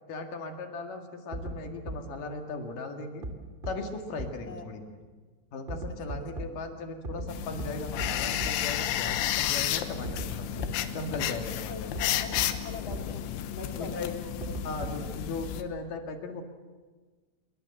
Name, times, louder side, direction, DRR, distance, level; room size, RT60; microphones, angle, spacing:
voice 1, 0.1-3.3 3.7-5.0 5.5-11.9 13.8-14.1 14.6-16.4, left 3 dB, 55° left, 4 dB, 3.1 m, -38 dB
sound 1, 1.3-1.5 1.9-2.0 3.2-3.3 3.6-3.7 4.2-4.3 5.7-6.5 7.0-7.3 7.6-7.7 8.0-8.1 8.4-8.5 10.0-10.3 10.6-10.7 12.0-12.1 12.4-12.5 12.9-13.0 14.4-15.1, right 1 dB, 20° right, 1.3 m, -35 dB
voice 2, 5.9-6.5 11.1-11.2 11.7-14.5 14.8-15.2, left 2 dB, 35° left, 2 dB, 2.5 m, -43 dB
sound 2, 7.3-15.6, left 11 dB, 85° left, 3.5 m, -32 dB
27.0 x 22.5 x 7.7 m, 1.4 s
omnidirectional pair, 5.4 m